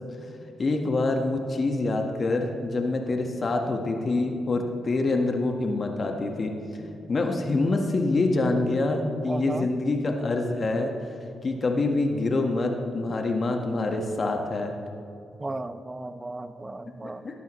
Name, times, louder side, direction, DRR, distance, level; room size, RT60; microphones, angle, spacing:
voice 1, 0.6-10.9 11.4-14.7 17.0-17.4, left 2 dB, 45° left, 3 dB, 1.5 m, -26 dB
voice 2, 9.3-9.7 15.4-17.4, right 2 dB, 25° right, 11 dB, 0.8 m, -35 dB
19.0 x 12.0 x 3.2 m, 2.5 s
supercardioid pair, 50°, 0 cm